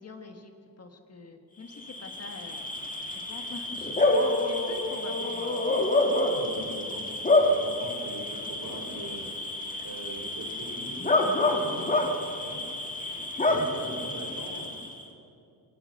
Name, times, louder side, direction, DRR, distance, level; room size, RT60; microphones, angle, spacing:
voice 1, 0.0-2.6 3.1-5.6, left 3 dB, 40° left, 5 dB, 1.6 m, -45 dB
Bark / Cricket, 1.7-15.0, left 2 dB, 20° left, 2.0 m, -28 dB
voice 2, 6.3-9.3 9.8-12.6 13.5-14.8, right 1 dB, 45° right, 1 dB, 4.9 m, -42 dB
26.5 x 19.0 x 6.7 m, 2.5 s
wide cardioid pair, 175°, 39 cm